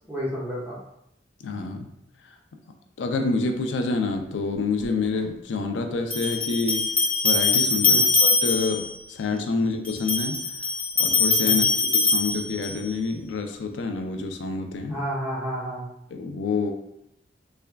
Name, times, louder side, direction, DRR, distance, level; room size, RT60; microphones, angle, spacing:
voice 1, 0.1-0.8 7.8-8.0 9.6-9.7 11.4-11.7 14.9-15.9, equal, 10° right, -7 dB, 1.1 m, -31 dB
voice 2, 1.4-1.9 3.0-6.9 7.2-10.5 11.0-11.6 12.0-14.9 16.1-16.7, left 4 dB, 90° left, 5 dB, 0.4 m, -27 dB
sound 1, 4.8-4.9 6.1-8.9 9.8-12.9, left 3 dB, 5° left, 0.5 m, -22 dB
3.4 x 3.3 x 2.2 m, 0.79 s
head